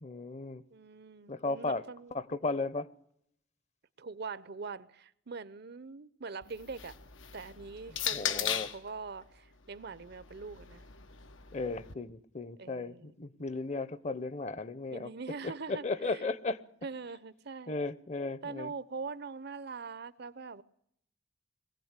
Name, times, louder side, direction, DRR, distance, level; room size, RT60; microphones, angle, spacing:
voice 1, 0.0-0.6 1.3-1.8 2.1-2.9 7.9-8.7 11.5-15.1 15.4-16.6 17.7-18.7, left 3 dB, 35° left, 0.8 m, -35 dB
voice 2, 0.7-2.6 4.0-7.0 7.3-10.8 12.6-13.1 14.9-16.2 16.8-17.7 18.4-20.6, right 4 dB, 55° right, 0.8 m, -43 dB
sound 1, 6.4-8.9 9.8-11.9, left 10 dB, 90° left, 1.3 m, -38 dB
22.0 x 16.0 x 8.2 m
head